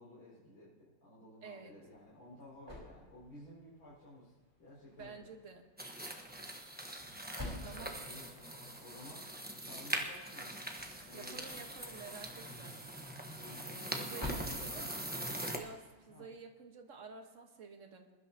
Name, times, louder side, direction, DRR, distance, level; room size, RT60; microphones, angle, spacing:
voice 1, 0.0-4.3 4.6-5.3 7.7-9.2 9.5-10.7 11.0-11.8 13.4-15.1 16.1-16.2, left 1 dB, 85° left, -9 dB, 6.2 m, -54 dB
voice 2, 1.4-1.7 4.9-5.7 7.6-8.0 11.1-12.8 13.6-15.0 15.4-18.1, right 4 dB, 40° right, 3 dB, 1.5 m, -51 dB
sound 1, 1.8-16.3, left 1 dB, 10° left, 3.9 m, -52 dB
sound 2, 5.8-15.6, right 1 dB, 10° right, 0.6 m, -42 dB
21.5 x 12.0 x 2.9 m, 1.4 s
omnidirectional pair, 2.3 m